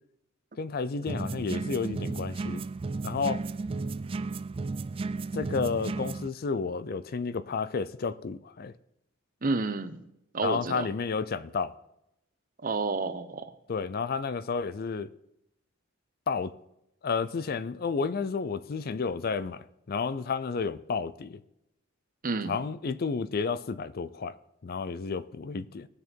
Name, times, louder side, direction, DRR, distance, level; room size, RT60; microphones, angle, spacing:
voice 1, 0.6-2.6 3.0-3.4 5.3-8.7 10.4-11.7 13.7-15.1 16.3-16.5 17.0-21.4 22.5-24.4 24.6-25.9, left 5 dB, 45° left, 0.4 m, -31 dB
sound 1, 1.1-6.3, right 3 dB, 25° right, 0.3 m, -34 dB
voice 2, 9.4-10.0 10.3-10.9 12.6-13.6 22.2-22.6, right 3 dB, 40° right, 0.8 m, -30 dB
19.0 x 6.6 x 4.5 m
head